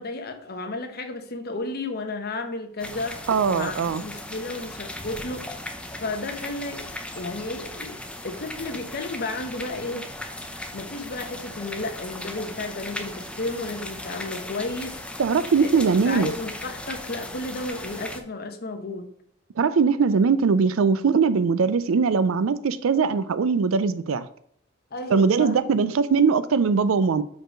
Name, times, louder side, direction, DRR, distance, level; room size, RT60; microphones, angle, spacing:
voice 1, 0.0-3.2 3.5-5.4 6.0-8.0 8.2-10.1 10.7-15.0 15.6-19.1 24.9-25.5, left 2 dB, 50° left, 7 dB, 0.9 m, -33 dB
sound 1, 2.8-18.2, left 1 dB, 5° left, 0.6 m, -37 dB
voice 2, 3.3-4.0 15.2-16.3 19.6-24.3 25.1-27.2, right 5 dB, 80° right, 15 dB, 0.4 m, -21 dB
4.8 x 4.5 x 5.0 m, 0.69 s
head